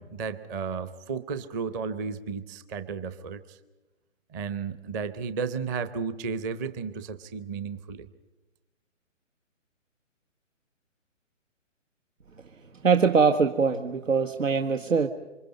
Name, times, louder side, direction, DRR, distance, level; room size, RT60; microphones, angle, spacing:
voice 1, 0.0-3.6 4.3-8.1, right 5 dB, 15° right, 12 dB, 0.7 m, -33 dB
voice 2, 12.8-15.1, right 5 dB, 85° right, 6 dB, 1.7 m, -22 dB
27.5 x 25.0 x 5.4 m, 1.1 s
hypercardioid pair, 150°, 38 cm